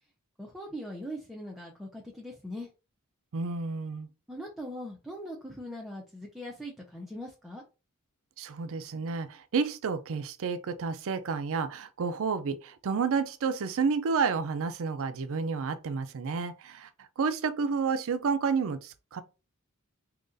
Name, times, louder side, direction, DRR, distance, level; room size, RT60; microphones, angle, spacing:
voice 1, 0.4-2.7 4.3-7.6, equal, ahead, 0.5 m, -41 dB
voice 2, 3.3-4.1 8.4-16.9 17.2-19.2, right 5 dB, 65° right, 0.4 m, -30 dB
3.9 x 2.8 x 2.5 m
head